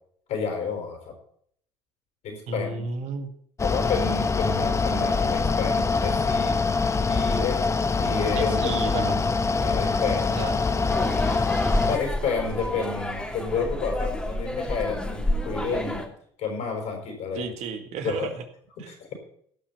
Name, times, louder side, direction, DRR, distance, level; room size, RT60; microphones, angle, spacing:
voice 1, 0.3-1.1 2.2-2.8 3.6-6.5 7.1-7.6 7.9-9.2 9.6-10.4 11.0-11.2 11.9-16.1 16.4-17.4 18.0-18.3 18.9-19.1, left 5 dB, 65° left, 2 dB, 5.4 m, -30 dB
voice 2, 2.5-3.3 8.4-9.1 10.3-10.8 17.3-18.4 18.8-18.9, right 5 dB, 65° right, 7 dB, 2.0 m, -33 dB
Mechanical fan, 3.6-12.0, left 4 dB, 20° left, 1.0 m, -24 dB
sound 1, 10.9-16.1, left 1 dB, 5° left, 2.8 m, -29 dB
16.5 x 6.1 x 7.1 m, 0.63 s
hypercardioid pair, 65°, 13 cm